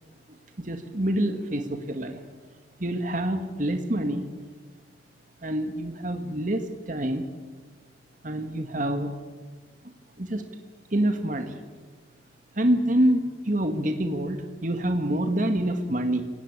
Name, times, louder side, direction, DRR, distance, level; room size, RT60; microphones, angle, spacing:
voice 1, 0.6-2.2 2.8-4.3 5.4-7.2 8.2-9.2 10.2-10.4 10.9-11.6 12.6-16.2, right 1 dB, 45° right, 6 dB, 1.8 m, -26 dB
28.0 x 17.5 x 8.9 m, 1.4 s
head